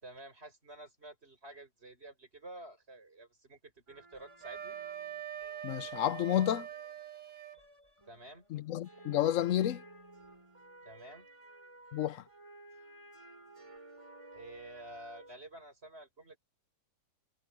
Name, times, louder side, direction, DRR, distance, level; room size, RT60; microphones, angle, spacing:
voice 1, 0.0-4.8 8.0-8.4 10.8-11.3 14.3-16.4, right 1 dB, 35° right, 6.7 m, -50 dB
sound 1, 3.9-15.4, right 1 dB, 15° right, 4.3 m, -56 dB
Wind instrument woodwind instrument, 4.4-7.6, right 9 dB, 50° right, 1.5 m, -43 dB
voice 2, 5.6-6.7 8.5-9.8 11.9-12.2, left 11 dB, 65° left, 0.8 m, -30 dB
omnidirectional pair, 1.8 m